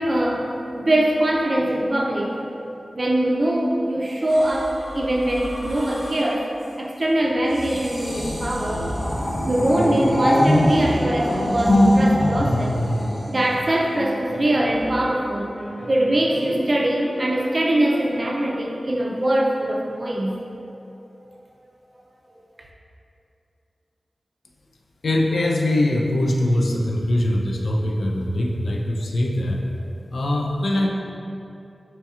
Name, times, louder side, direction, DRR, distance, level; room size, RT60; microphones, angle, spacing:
voice 1, 0.0-2.6 2.9-6.5 6.8-8.9 9.5-12.9 13.3-15.5 15.9-20.4 21.0-21.2, right 1 dB, 45° right, -1 dB, 0.4 m, -22 dB
sound 1, 4.3-6.4 7.5-13.9 14.8-15.1, left 1 dB, 50° left, 1.1 m, -23 dB
sound 2, 9.6-12.6 13.9-15.1 15.6-18.5, equal, 5° right, 0.6 m, -37 dB
voice 2, 25.0-29.6 30.1-30.9, left 1 dB, 85° left, 0 dB, 0.3 m, -22 dB
4.2 x 2.7 x 2.3 m, 2.8 s
wide cardioid pair, 75°, 0 cm